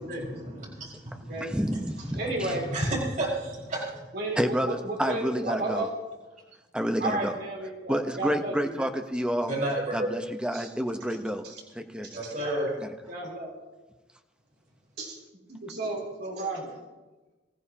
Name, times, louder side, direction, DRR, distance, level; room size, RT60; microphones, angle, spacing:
voice 1, 0.0-1.5 2.2-3.8 9.4-10.1 12.1-12.7, right 1 dB, 45° right, -4 dB, 5.0 m, -31 dB
voice 2, 1.4-2.5 4.4-5.9 6.7-7.3 7.9-9.5 9.9-11.4 11.7-12.1, equal, 5° right, 5 dB, 0.9 m, -29 dB
voice 3, 2.1-2.7 4.1-5.9 7.0-8.9 10.5-10.7 11.4-11.6 12.0-12.5 13.1-13.5 15.0-15.2 15.5-16.8, right 2 dB, 60° right, -1 dB, 3.5 m, -33 dB
24.0 x 15.0 x 2.9 m, 1.2 s
head